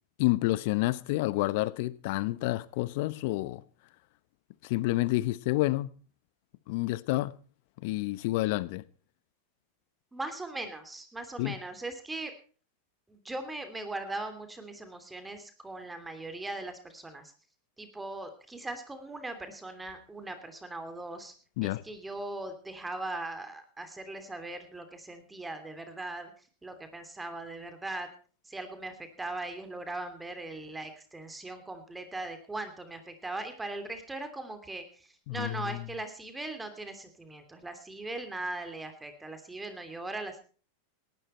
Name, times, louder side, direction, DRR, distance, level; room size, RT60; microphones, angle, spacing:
voice 1, 0.2-3.6 4.6-5.9 6.7-7.3 7.8-8.8 11.4-11.5 21.6-21.8 35.3-35.9, left 19 dB, 60° left, 1.0 m, -29 dB
voice 2, 10.1-12.3 13.1-17.3 17.8-21.3 21.6-28.1 28.4-40.4, right 2 dB, 10° right, 2.9 m, -39 dB
18.5 x 12.5 x 4.4 m
hypercardioid pair, 100°, 0 cm